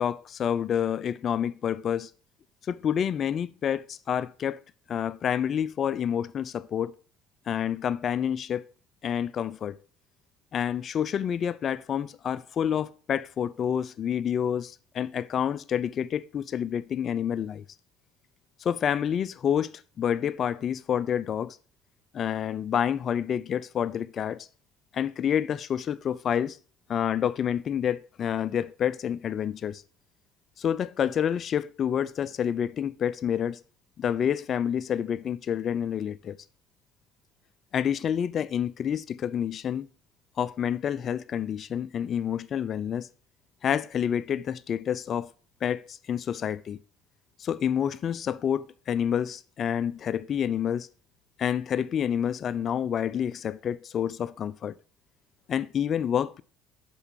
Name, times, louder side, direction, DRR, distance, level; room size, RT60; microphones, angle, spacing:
voice 1, 0.0-2.1 2.7-4.6 4.9-6.9 7.5-8.6 9.0-9.8 10.5-17.6 18.6-21.6 22.1-24.5 24.9-26.6 26.9-29.8 30.6-33.6 34.0-36.4 37.7-39.9 40.4-43.1 43.6-45.3 45.6-46.8 47.4-50.9 51.4-54.7 55.5-56.4, left 9 dB, 50° left, 0.6 m, -28 dB
8.0 x 6.2 x 5.7 m
hypercardioid pair, 70°, 0 cm